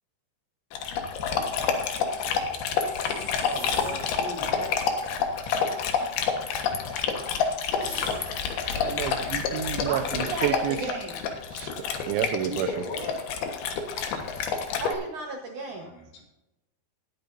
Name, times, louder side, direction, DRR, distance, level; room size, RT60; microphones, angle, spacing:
Dog, 0.7-14.9, left 6 dB, 65° left, 2.9 m, -28 dB
sound 1, 2.8-4.2 7.7-8.6, equal, 20° left, 5.3 m, -43 dB
voice 1, 3.3-4.9 12.4-13.2 15.7-16.2, left 1 dB, 90° left, -3 dB, 6.0 m, -39 dB
voice 2, 8.7-10.8 11.5-11.7 12.1-12.8, right 11 dB, 85° right, 9 dB, 3.2 m, -30 dB
voice 3, 9.9-11.2 14.8-15.9, right 3 dB, 65° right, 0 dB, 2.0 m, -34 dB
20.0 x 9.2 x 2.6 m, 0.94 s
omnidirectional pair, 5.3 m